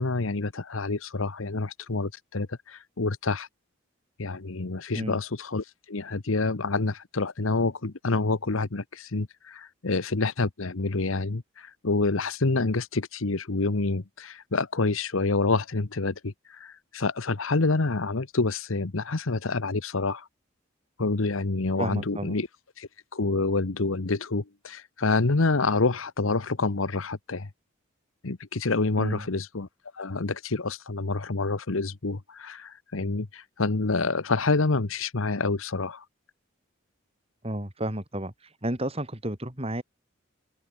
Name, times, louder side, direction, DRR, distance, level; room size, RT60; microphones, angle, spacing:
voice 1, 0.0-3.5 4.2-20.3 21.0-22.5 22.8-27.5 28.2-29.7 29.9-36.0, left 3 dB, 75° left, 1.1 m, -27 dB
voice 2, 21.8-22.4 29.0-29.2 37.4-38.3 38.6-39.8, right 1 dB, 30° right, 3.8 m, -31 dB
open air
head